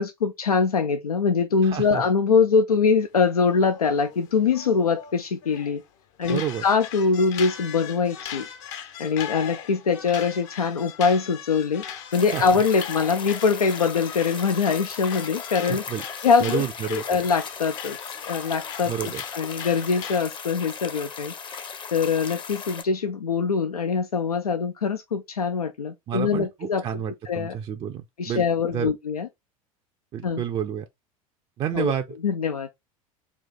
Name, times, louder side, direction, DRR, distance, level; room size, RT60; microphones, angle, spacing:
voice 1, 0.0-5.8 6.2-8.5 9.0-11.8 12.1-15.8 16.2-16.6 16.9-18.0 18.3-21.3 21.9-27.5 28.2-29.3 30.2-30.4 31.7-31.9 32.2-32.7, left 5 dB, 90° left, 0.4 m, -23 dB
voice 2, 1.6-2.0 6.3-6.6 12.3-12.6 15.7-16.0 16.4-17.2 18.9-19.2 26.1-28.4 28.7-28.9 30.1-30.9 31.6-32.0, right 9 dB, 30° right, 0.4 m, -30 dB
sound 1, 3.2-5.8 6.2-20.2, left 9 dB, 55° left, 0.8 m, -39 dB
sound 2, 12.1-22.8, left 6 dB, 25° left, 0.6 m, -37 dB
4.1 x 2.4 x 3.8 m
figure-of-eight pair, 80°, 19 cm